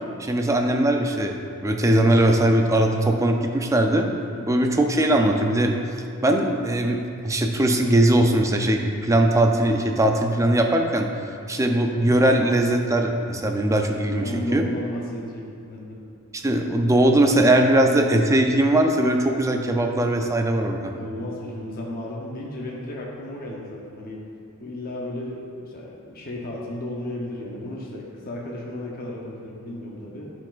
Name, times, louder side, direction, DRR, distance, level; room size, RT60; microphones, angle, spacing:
voice 1, 0.2-4.1 4.5-5.8 6.2-7.0 7.2-11.1 11.5-14.6 16.3-20.9, right 1 dB, 15° right, 3 dB, 0.4 m, -20 dB
voice 2, 14.2-16.0 20.9-24.3 24.6-30.3, left 1 dB, 40° left, -3 dB, 0.7 m, -34 dB
11.5 x 4.6 x 2.4 m, 2.7 s
head